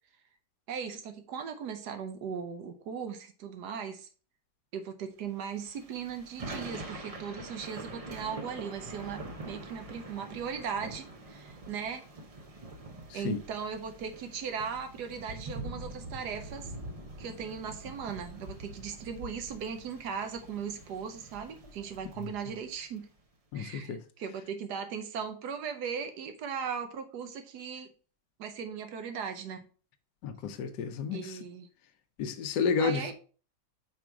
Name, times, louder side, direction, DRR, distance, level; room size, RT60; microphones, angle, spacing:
voice 1, 0.7-4.1 4.7-12.0 13.1-16.7 17.2-23.1 23.5-27.9 28.4-29.7 31.1-31.7 32.8-33.1, right 7 dB, 80° right, 1.3 m, -38 dB
Thunder / Rain, 5.5-23.0, right 2 dB, 65° right, 0.3 m, -45 dB
voice 2, 23.5-24.0 30.2-31.4 32.2-33.1, left 5 dB, 85° left, 1.2 m, -31 dB
5.1 x 4.8 x 4.5 m
omnidirectional pair, 1.7 m